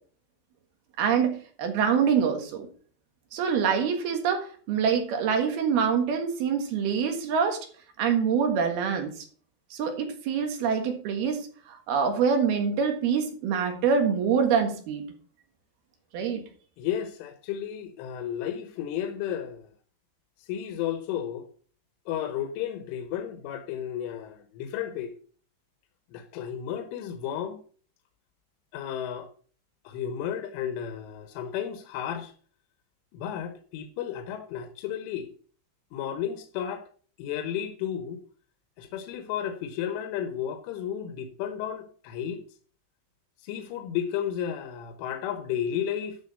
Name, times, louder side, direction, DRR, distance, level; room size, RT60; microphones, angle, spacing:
voice 1, 1.0-2.7 3.3-7.6 8.0-9.1 9.7-15.0 16.1-16.4, right 6 dB, 65° right, 3.2 m, -25 dB
voice 2, 16.8-19.7 20.4-21.5 22.1-25.1 26.1-27.6 28.7-29.3 29.8-32.3 33.1-35.3 35.9-36.9 37.2-38.2 38.8-42.4 43.4-46.2, left 9 dB, 85° left, 3.5 m, -33 dB
11.5 x 6.2 x 5.3 m
omnidirectional pair, 5.5 m